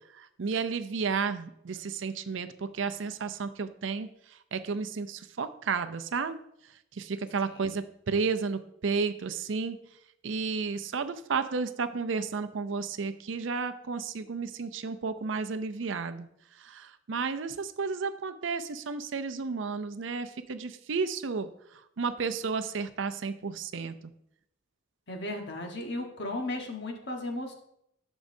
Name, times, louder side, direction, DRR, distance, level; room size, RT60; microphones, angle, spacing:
voice 1, 0.1-6.4 6.9-9.8 10.2-16.3 16.6-23.9, right 5 dB, 65° right, 11 dB, 0.5 m, -32 dB
voice 2, 25.1-27.5, left 1 dB, 60° left, 3 dB, 1.3 m, -35 dB
11.5 x 6.3 x 2.7 m, 0.76 s
head